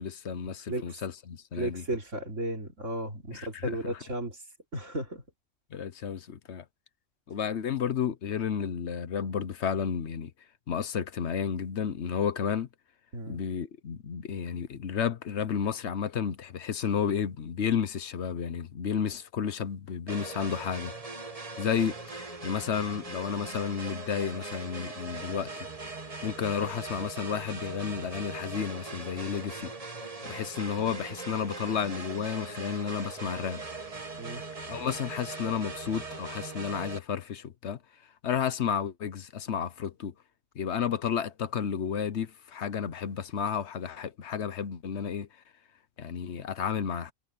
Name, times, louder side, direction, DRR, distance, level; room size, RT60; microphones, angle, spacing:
voice 1, 0.0-1.8 3.3-3.8 5.7-6.6 7.3-10.3 10.7-12.7 13.3-20.9 21.6-25.7 26.2-29.7 30.2-33.6 34.7-37.8 38.2-40.1 40.5-45.3 46.0-47.1, left 7 dB, 65° left, 1.2 m, -32 dB
voice 2, 1.6-4.4 4.7-5.2 13.1-13.4 34.2-34.4, right 1 dB, 75° right, 4.1 m, -34 dB
sound 1, 20.1-37.0, right 3 dB, 30° right, 1.6 m, -40 dB
omnidirectional pair, 1.3 m